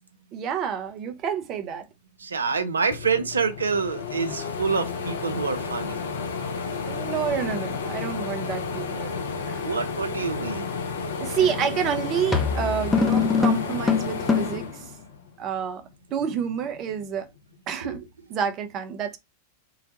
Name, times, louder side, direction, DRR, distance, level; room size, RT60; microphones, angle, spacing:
voice 1, 0.3-1.9 6.8-9.1 9.5-9.7 11.2-14.8 15.4-15.8 16.1-17.3 17.7-18.0 18.3-19.2, right 8 dB, 35° right, 0.6 m, -29 dB
voice 2, 2.2-6.0 9.6-10.7 17.9-18.0, right 5 dB, 75° right, 0.5 m, -27 dB
sound 1, 2.6-2.7 2.9-15.5 15.9-17.1, left 5 dB, 60° left, 0.6 m, -32 dB
sound 2, 11.4-11.7 12.3-14.7, left 5 dB, 10° left, 0.5 m, -23 dB
3.8 x 2.2 x 2.8 m
figure-of-eight pair, 90°, 0 cm